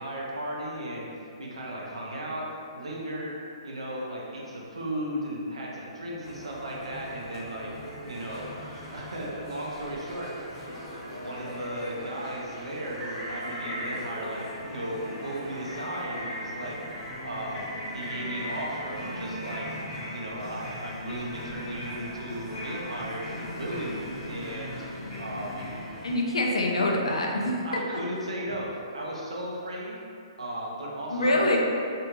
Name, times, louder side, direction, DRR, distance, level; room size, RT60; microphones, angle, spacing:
voice 1, 0.0-3.4 3.6-7.7 8.0-8.4 8.9-10.3 11.0-16.8 17.2-17.6 17.9-19.7 20.1-25.6 27.6-30.0 30.4-31.5, right 1 dB, 90° right, -4 dB, 0.6 m, -36 dB
sound 1, 6.2-26.1, equal, 30° left, 1.1 m, -38 dB
voice 2, 26.0-27.6 27.9-28.0 31.1-31.6, left 1 dB, 90° left, 0 dB, 0.4 m, -25 dB
2.7 x 2.2 x 2.9 m, 2.5 s
hypercardioid pair, 140°, 3 cm